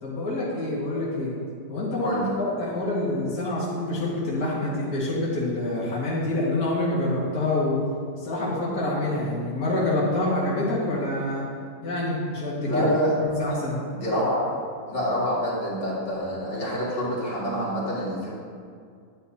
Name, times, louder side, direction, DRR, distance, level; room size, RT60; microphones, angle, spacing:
voice 1, 0.0-1.3 1.7-7.8 8.1-11.4 11.8-12.9 13.3-13.8, left 2 dB, 60° left, -8 dB, 2.3 m, -26 dB
voice 2, 12.6-13.2 13.9-14.5 14.9-18.3, equal, 90° left, -8 dB, 3.1 m, -27 dB
11.0 x 9.6 x 2.8 m, 2.2 s
omnidirectional pair, 1.9 m